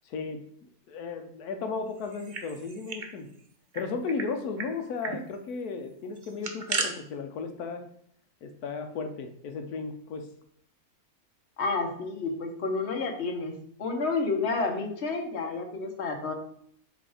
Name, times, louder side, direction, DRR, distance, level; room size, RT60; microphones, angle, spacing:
voice 1, 0.0-0.4 0.9-3.3 3.7-7.8 8.4-10.3, left 4 dB, 90° left, 6 dB, 1.2 m, -35 dB
sound 1, 2.0-3.1 3.4-3.5 3.7-4.3 4.6-4.7 5.0-5.2 6.2-6.9, right 4 dB, 40° right, 0.8 m, -34 dB
voice 2, 11.6-13.5 13.8-16.3, left 3 dB, 50° left, 2 dB, 1.3 m, -30 dB
7.5 x 3.2 x 4.8 m, 0.64 s
omnidirectional pair, 1.6 m